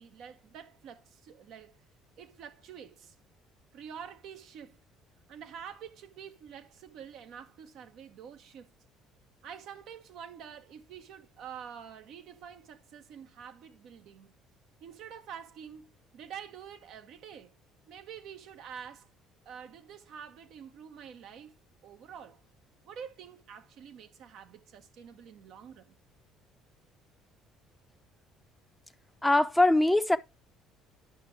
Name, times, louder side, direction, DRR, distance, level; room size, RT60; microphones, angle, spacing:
voice 1, 0.0-1.8 2.2-3.1 3.7-4.8 5.3-8.7 9.4-14.4 14.8-17.5 17.9-19.1 19.4-22.4 22.8-26.0, right 8 dB, 65° right, 0.9 m, -47 dB
voice 2, 29.2-30.2, left 2 dB, 5° left, 0.6 m, -22 dB
9.7 x 6.0 x 3.2 m
hypercardioid pair, 60°, 0 cm